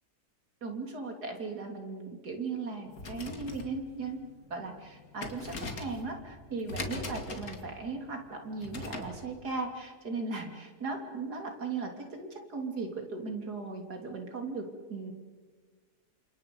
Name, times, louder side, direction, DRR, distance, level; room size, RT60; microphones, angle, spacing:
voice 1, 0.6-4.2 4.5-14.7 14.9-15.1, right 3 dB, 75° right, 3 dB, 3.5 m, -37 dB
sound 1, 2.9-9.2, left 2 dB, 60° left, 2.7 m, -42 dB
29.5 x 27.0 x 5.4 m, 1.5 s
omnidirectional pair, 1.7 m